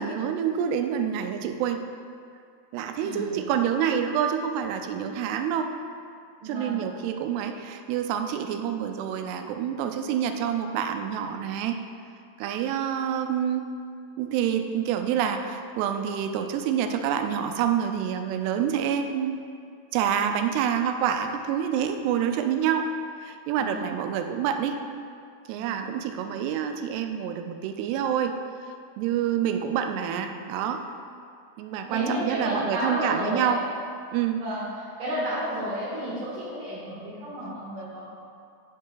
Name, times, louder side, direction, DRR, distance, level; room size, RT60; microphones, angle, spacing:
voice 1, 0.0-1.8 2.7-5.7 6.4-11.8 12.4-13.6 14.2-19.4 19.9-22.9 23.2-24.8 25.5-28.4 29.0-30.8 31.6-33.6 34.1-34.4, right 8 dB, 85° right, 6 dB, 2.6 m, -27 dB
voice 2, 3.0-3.5 6.4-6.8 23.6-23.9 25.5-25.9 31.9-33.6 34.3-38.0, right 1 dB, 60° right, -10 dB, 2.9 m, -31 dB
9.6 x 5.4 x 3.8 m, 2.4 s
omnidirectional pair, 4.8 m